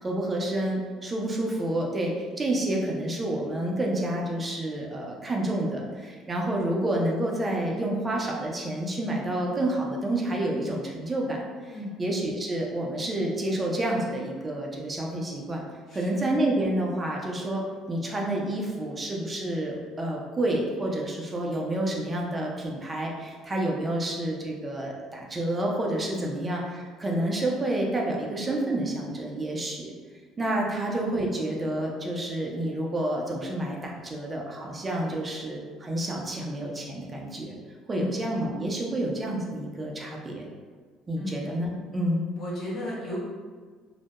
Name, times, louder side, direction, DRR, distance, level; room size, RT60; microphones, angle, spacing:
voice 1, 0.0-15.6 15.9-29.9 30.4-37.6 37.9-40.5 41.1-42.3, right 1 dB, 25° right, -1 dB, 0.5 m, -29 dB
voice 2, 15.9-16.2 26.2-26.4 37.9-38.2 41.2-41.4 42.4-43.2, left 1 dB, 60° left, -6 dB, 0.9 m, -35 dB
2.2 x 2.0 x 2.8 m, 1.5 s
supercardioid pair, 75°, 0 cm